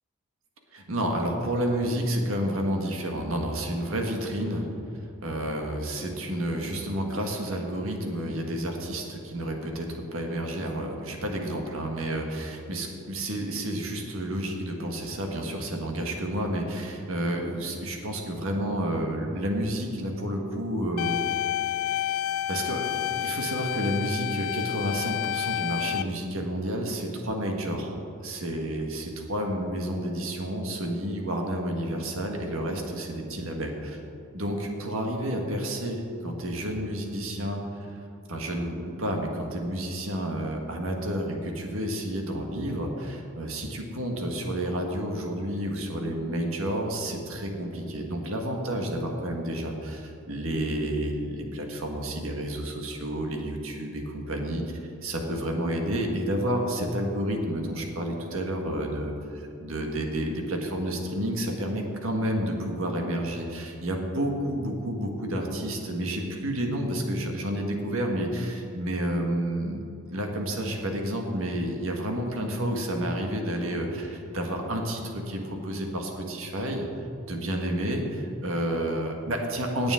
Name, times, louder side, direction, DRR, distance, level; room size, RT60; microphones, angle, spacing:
voice 1, 0.7-4.6 5.2-21.2 22.5-27.9 28.2-34.0 34.3-37.9 38.3-59.1 59.6-69.8 70.1-79.9, right 1 dB, 65° right, 2 dB, 1.7 m, -30 dB
sound 1, 21.0-26.0, left 12 dB, 80° left, 0.3 m, -29 dB
17.0 x 8.6 x 3.8 m, 2.8 s
head